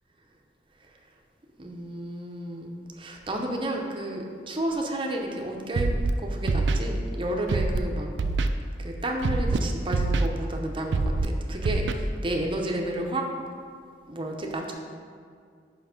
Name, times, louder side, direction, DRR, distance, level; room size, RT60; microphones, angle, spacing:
voice 1, 1.6-2.7 3.0-5.9 6.2-8.1 8.8-13.2 14.1-14.7, right 1 dB, 30° right, 1 dB, 0.7 m, -31 dB
Scratching (performance technique), 5.8-6.1 6.5-6.8 7.5-7.8 8.2-8.5 9.2-9.6 9.9-10.3 10.9-11.3 11.6-11.9, right 3 dB, 70° right, 0.4 m, -24 dB
5.6 x 5.2 x 5.1 m, 2.2 s
head